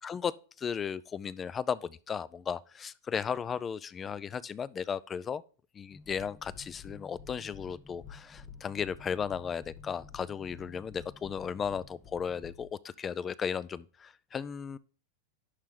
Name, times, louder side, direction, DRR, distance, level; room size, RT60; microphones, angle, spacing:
voice 1, 0.0-5.4 5.7-14.8, left 7 dB, 15° left, 0.3 m, -35 dB
sound 1, 5.9-12.5, left 2 dB, ahead, 0.8 m, -56 dB
sound 2, 6.0-12.7, left 6 dB, 45° left, 1.9 m, -51 dB
11.0 x 4.4 x 3.7 m
supercardioid pair, 160°, 0 cm